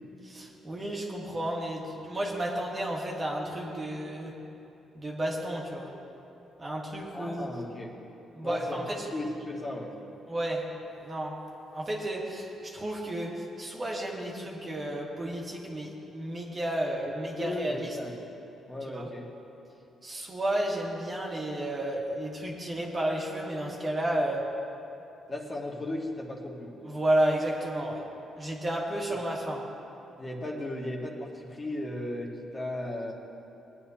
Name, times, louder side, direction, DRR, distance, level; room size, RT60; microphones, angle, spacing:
voice 1, 0.2-4.4 4.9-5.9 6.6-7.5 8.3-9.1 10.3-10.7 11.0-11.4 11.7-18.0 18.9-19.1 20.0-24.5 26.8-28.1 28.4-29.6, right 1 dB, 30° right, -2 dB, 1.8 m, -32 dB
voice 2, 7.1-8.0 8.4-9.9 17.3-18.1 18.7-19.3 25.3-26.8 30.2-33.1, left 1 dB, 30° left, -2 dB, 1.8 m, -36 dB
20.0 x 9.5 x 2.9 m, 2.9 s
cardioid pair, 90°, 0 cm